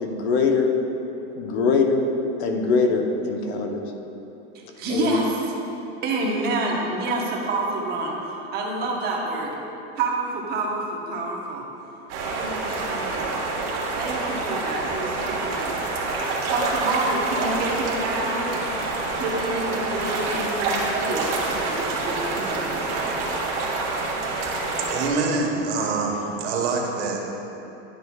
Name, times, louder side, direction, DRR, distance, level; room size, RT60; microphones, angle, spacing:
voice 1, 0.0-0.7 1.4-2.1 2.4-3.8 4.9-5.2, left 4 dB, 65° left, 3 dB, 0.9 m, -22 dB
voice 2, 4.5-5.5 6.0-9.5 10.0-11.6 12.2-13.3 13.9-15.9 16.5-18.6 19.2-22.9, right 2 dB, 25° right, -2 dB, 1.0 m, -28 dB
sound 1, 12.1-25.1, right 3 dB, 60° right, 1.5 m, -27 dB
voice 3, 24.9-27.2, right 4 dB, 75° right, 0 dB, 1.3 m, -25 dB
11.0 x 6.5 x 2.3 m, 3.0 s
supercardioid pair, 165°, 35 cm